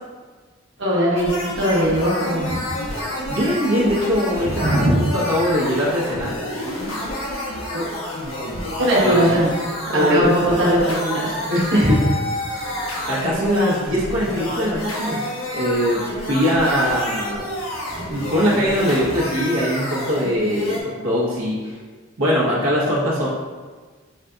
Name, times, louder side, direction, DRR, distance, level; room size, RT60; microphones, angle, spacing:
voice 1, 0.8-2.6 4.5-4.9 7.7-7.8 8.8-9.5 9.9-11.3 11.7-12.0 17.9-18.1, right 1 dB, 60° right, -6 dB, 1.2 m, -20 dB
sound 1, 1.2-20.8, left 1 dB, 90° left, 1.1 m, -29 dB
voice 2, 3.3-4.9 5.1-6.3 9.0-9.4 9.9-10.3 11.5-12.0 13.1-15.2 15.5-17.4 18.1-21.7 22.2-23.3, equal, 80° right, -7 dB, 1.1 m, -21 dB
5.6 x 3.8 x 2.4 m, 1.4 s
head